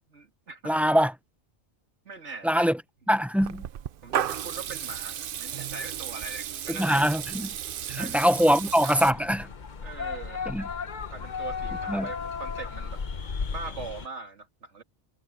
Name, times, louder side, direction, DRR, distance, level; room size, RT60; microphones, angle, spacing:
voice 1, 0.1-0.7 2.0-2.7 4.0-7.1 8.0-8.5 8.8-8.9 9.8-10.4 11.1-13.0 13.5-14.8, right 4 dB, 90° right, 2.7 m, -41 dB
voice 2, 0.6-1.1 2.4-2.8 3.1-3.6 6.8-7.5 7.9-9.5 10.5-10.6 11.9-12.1, equal, ahead, 0.6 m, -23 dB
Water tap faucet / Liquid, 3.4-9.1, right 10 dB, 60° right, 0.7 m, -34 dB
sound 1, 9.0-14.1, left 5 dB, 45° left, 1.0 m, -34 dB
omnidirectional pair, 1.2 m